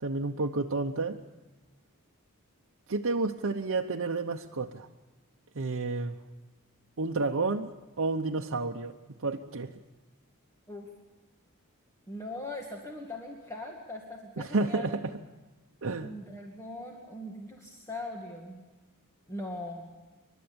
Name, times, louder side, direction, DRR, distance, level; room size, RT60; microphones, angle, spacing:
voice 1, 0.0-1.2 2.9-4.9 5.5-6.2 7.0-7.7 8.0-8.9 9.2-9.7 14.4-15.1 15.8-16.1, right 3 dB, 65° right, 2 dB, 0.9 m, -30 dB
voice 2, 12.1-14.9 16.0-18.6 19.3-19.9, left 1 dB, 15° left, -1 dB, 2.2 m, -40 dB
29.5 x 12.5 x 8.7 m, 1.2 s
head